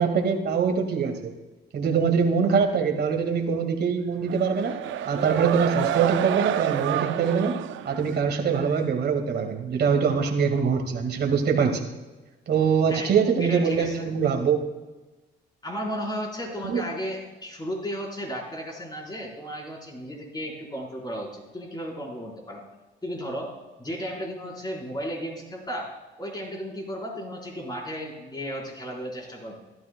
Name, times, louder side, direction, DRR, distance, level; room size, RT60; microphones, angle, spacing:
voice 1, 0.0-1.3 1.7-4.8 5.1-7.6 7.9-11.9 12.5-14.6 16.6-16.8, right 6 dB, 55° right, 4 dB, 1.8 m, -23 dB
sound 1, 4.2-8.7, right 11 dB, 75° right, 0.5 m, -29 dB
voice 2, 13.4-14.1 15.6-22.6 23.0-23.5 23.8-25.9 26.2-29.5, equal, 20° left, -1 dB, 4.2 m, -34 dB
15.0 x 12.0 x 2.2 m, 1.1 s
cardioid pair, 90°, 20 cm